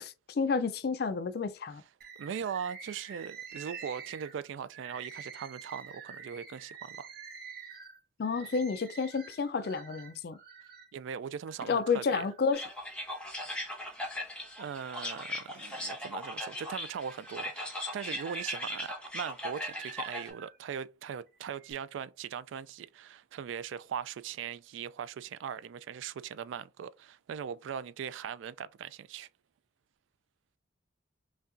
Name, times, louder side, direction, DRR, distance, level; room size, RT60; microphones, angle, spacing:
voice 1, 0.0-1.8 8.2-10.4 11.7-12.6, left 5 dB, 55° left, 0.4 m, -30 dB
Bird, 2.0-10.9 11.5-12.4 13.0-14.0 14.4-15.8 16.3-20.6 21.3-21.7, right 6 dB, 55° right, 0.7 m, -49 dB
voice 2, 2.2-7.1 10.9-12.3 14.6-29.3, right 7 dB, 80° right, 0.3 m, -40 dB
sound 1, 12.5-20.3, left 1 dB, 5° left, 0.9 m, -39 dB
5.4 x 2.3 x 2.5 m
head